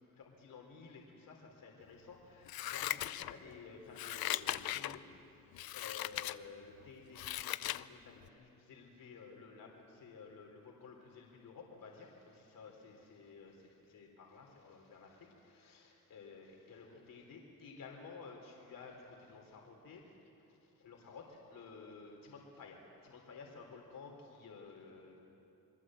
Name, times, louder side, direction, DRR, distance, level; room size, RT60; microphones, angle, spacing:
voice 1, 0.1-25.2, left 4 dB, 65° left, 1 dB, 3.7 m, -53 dB
Scissors, 2.5-3.6 3.9-5.0 5.5-6.4 6.8-7.9 8.2-8.3, left 14 dB, 85° left, 0.7 m, -38 dB
27.0 x 22.0 x 7.7 m, 2.9 s
cardioid pair, 125°, 35 cm